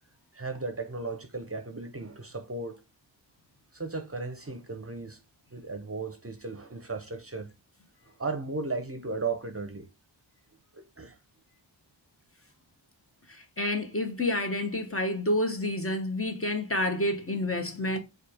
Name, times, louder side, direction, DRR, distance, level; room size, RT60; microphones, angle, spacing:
voice 1, 0.3-2.8 3.7-5.2 5.5-7.5 8.2-9.9 10.7-11.1, right 3 dB, 30° right, 0.7 m, -35 dB
voice 2, 13.3-18.0, left 1 dB, 30° left, 1.0 m, -29 dB
4.3 x 2.5 x 4.7 m
wide cardioid pair, 50°, 46 cm